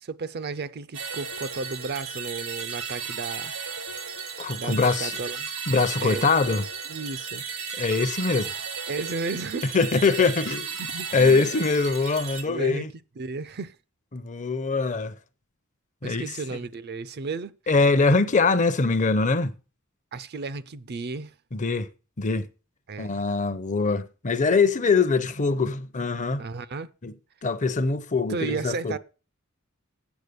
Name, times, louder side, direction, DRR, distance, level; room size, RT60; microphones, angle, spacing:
voice 1, 0.0-3.5 4.6-5.5 6.0-6.3 6.9-7.4 8.9-9.7 10.8-11.6 12.4-12.9 13.2-13.7 16.0-17.5 20.1-21.3 22.9-23.2 26.4-26.9 28.3-29.0, right 4 dB, 50° right, 0.5 m, -33 dB
sound 1, 0.9-12.4, right 6 dB, 90° right, 1.6 m, -35 dB
voice 2, 4.4-5.2 5.7-6.7 7.7-8.5 9.7-10.7 11.1-12.9 14.1-15.1 16.0-16.3 17.7-19.5 21.5-21.9 22.2-22.5 23.0-26.4 27.0-27.1 27.4-29.0, left 4 dB, 35° left, 0.7 m, -23 dB
8.2 x 7.0 x 6.8 m
head